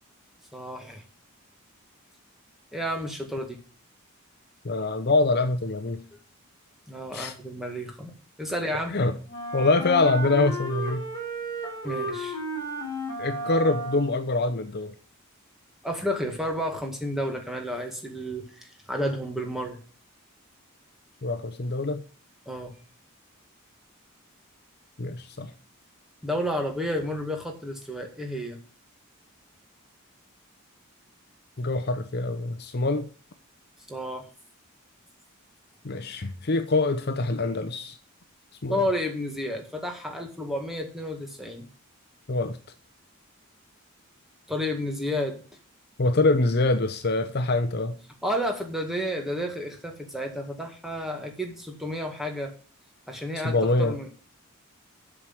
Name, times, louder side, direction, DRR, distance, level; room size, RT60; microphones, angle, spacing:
voice 1, 0.5-1.0 2.7-3.6 6.9-9.0 11.8-12.4 15.8-19.8 22.5-22.7 26.2-28.6 33.9-34.3 38.7-41.6 44.5-45.4 48.2-52.5 53.1-54.1, equal, ahead, 1.9 m, -31 dB
voice 2, 4.6-6.0 7.1-7.3 8.9-9.1 9.5-11.1 13.2-14.9 21.2-22.0 25.0-25.5 31.6-33.1 35.8-38.0 38.6-38.8 42.3-42.6 46.0-48.0 53.4-54.0, left 2 dB, 45° left, 0.7 m, -24 dB
Wind instrument woodwind instrument, 9.3-14.3, right 1 dB, 20° left, 3.6 m, -33 dB
7.8 x 6.2 x 7.7 m
head